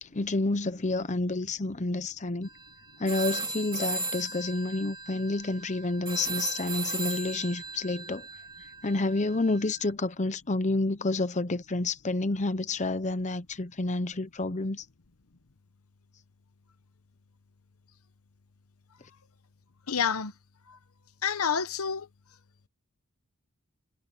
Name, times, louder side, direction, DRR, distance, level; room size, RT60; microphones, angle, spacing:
voice 1, 0.0-2.5 3.0-8.3 8.8-14.8, left 2 dB, 35° left, 0.8 m, -29 dB
sound 1, 2.5-2.7 3.1-9.7, right 3 dB, 20° right, 2.6 m, -36 dB
voice 2, 19.9-20.3 20.7-20.8 21.2-22.1, left 6 dB, 75° left, 0.9 m, -28 dB
head